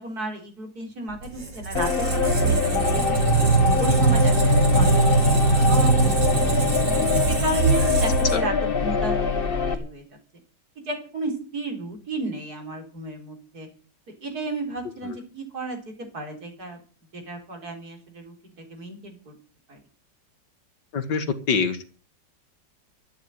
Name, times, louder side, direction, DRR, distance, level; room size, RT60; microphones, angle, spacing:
voice 1, 0.0-3.2 3.8-6.5 7.3-10.0 10.9-13.7 14.2-16.8 17.1-18.3 18.7-19.3 19.7-19.8, right 2 dB, 55° right, 3 dB, 4.7 m, -33 dB
Squeak, 1.1-8.8, right 3 dB, 80° right, 4.7 m, -21 dB
sound 1, 1.7-9.7, left 5 dB, 30° left, 1.6 m, -24 dB
voice 2, 20.9-21.9, left 5 dB, 70° left, 10 dB, 2.2 m, -25 dB
13.5 x 8.9 x 9.1 m, 0.38 s
omnidirectional pair, 1.9 m